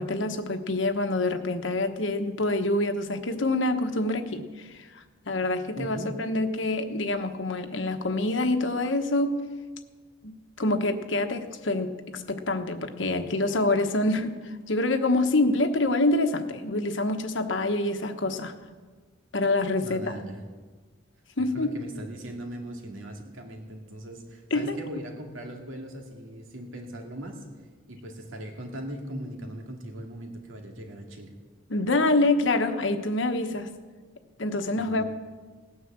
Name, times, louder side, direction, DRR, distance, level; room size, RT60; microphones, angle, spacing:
voice 1, 0.0-9.4 10.2-18.5 19.3-20.1 21.4-21.7 24.5-24.8 31.7-33.7 34.4-35.0, left 2 dB, 65° left, 7 dB, 1.2 m, -26 dB
voice 2, 5.8-6.1 19.8-20.4 21.5-27.4 27.9-31.3 34.8-35.0, right 1 dB, 80° right, 3 dB, 2.3 m, -39 dB
18.0 x 9.7 x 7.4 m, 1.4 s
head